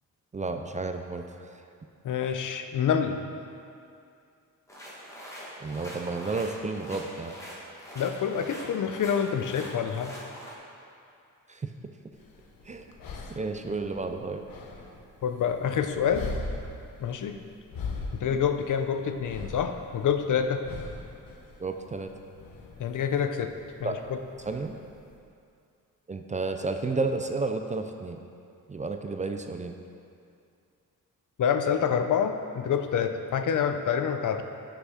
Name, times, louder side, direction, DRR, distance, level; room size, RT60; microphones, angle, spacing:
voice 1, 0.3-1.5 5.6-7.4 11.5-11.7 12.6-12.9 13.4-14.4 18.3-18.4 21.6-22.1 23.8-23.9 24.5-24.7 26.1-28.2 28.7-29.7, right 3 dB, 20° right, 6 dB, 0.5 m, -32 dB
voice 2, 2.0-3.2 7.9-10.1 15.2-16.3 17.0-17.4 18.2-20.6 22.8-23.5 23.8-23.9 31.4-34.4, left 7 dB, 65° left, 7 dB, 0.7 m, -27 dB
sound 1, 4.7-10.5, equal, 10° left, 2.1 m, -43 dB
sound 2, 12.1-25.2, left 3 dB, 80° left, 1.2 m, -41 dB
9.7 x 6.1 x 5.7 m, 2.5 s
wide cardioid pair, 135°, 34 cm